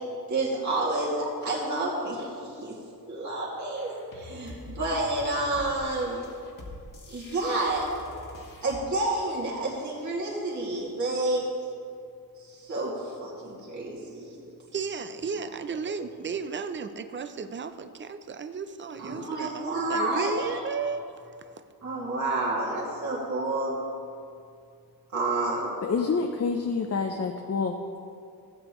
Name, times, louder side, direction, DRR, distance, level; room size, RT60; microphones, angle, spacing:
voice 1, 0.3-2.7 3.1-6.3 7.1-7.9 8.6-11.4 12.4-14.4 19.0-20.6 21.8-23.7 25.1-25.8, right 2 dB, 50° right, -6 dB, 2.3 m, -29 dB
sound 1, 3.8-8.8, left 1 dB, 60° left, 1.4 m, -45 dB
voice 2, 14.7-21.0 21.4-21.5, right 5 dB, 30° right, 10 dB, 0.4 m, -34 dB
voice 3, 25.8-28.0, left 4 dB, 45° left, 4 dB, 0.5 m, -28 dB
16.0 x 8.8 x 3.1 m, 2.5 s
wide cardioid pair, 165°, 37 cm